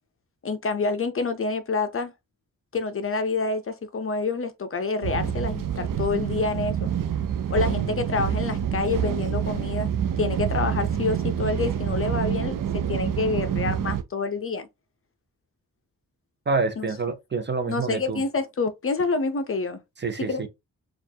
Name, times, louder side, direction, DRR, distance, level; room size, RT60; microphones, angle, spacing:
voice 1, 0.4-2.1 2.7-6.9 7.5-9.9 10.2-14.7 16.8-16.9 17.7-19.8 20.3-20.5, left 4 dB, 40° left, 0.6 m, -27 dB
sound 1, 5.0-14.0, right 9 dB, 75° right, 0.5 m, -27 dB
voice 2, 16.5-18.2 20.0-20.5, right 4 dB, 35° right, 0.6 m, -27 dB
4.3 x 2.5 x 2.7 m
wide cardioid pair, 90°, 33 cm